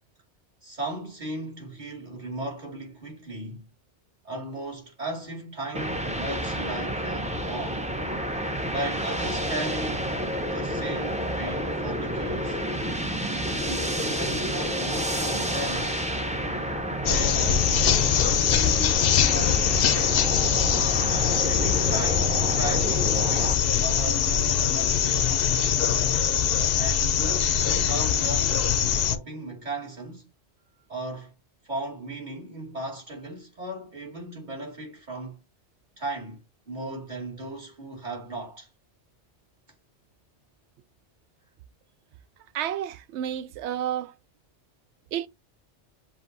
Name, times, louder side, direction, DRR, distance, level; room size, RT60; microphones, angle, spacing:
voice 1, 0.6-3.7 4.2-7.8 8.7-10.1 10.5-12.6 13.5-16.1 17.0-20.3 21.4-23.5 23.8-25.8 26.8-28.7 29.0-30.3 30.9-31.3 31.6-35.4 36.0-38.7, right 1 dB, 40° right, 2.2 m, -36 dB
sound 1, 5.7-23.5, equal, 10° right, 0.5 m, -30 dB
sound 2, 17.0-29.2, left 8 dB, 65° left, 0.7 m, -23 dB
voice 2, 42.5-44.1 45.1-45.3, right 10 dB, 80° right, 0.8 m, -30 dB
7.3 x 2.6 x 2.6 m
omnidirectional pair, 1.2 m